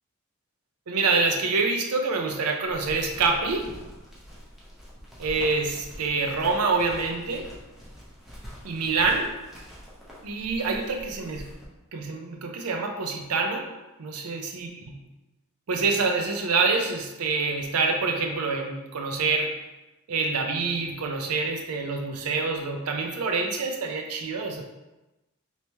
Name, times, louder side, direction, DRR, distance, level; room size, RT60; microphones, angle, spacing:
voice 1, 0.9-3.7 5.2-7.5 8.6-9.4 10.2-11.5 11.9-13.7 14.0-15.0 15.7-19.6 20.1-24.6, right 4 dB, 85° right, 3 dB, 0.5 m, -26 dB
sound 1, 2.6-11.6, equal, ahead, 0.7 m, -44 dB
3.0 x 2.9 x 3.3 m, 1.0 s
head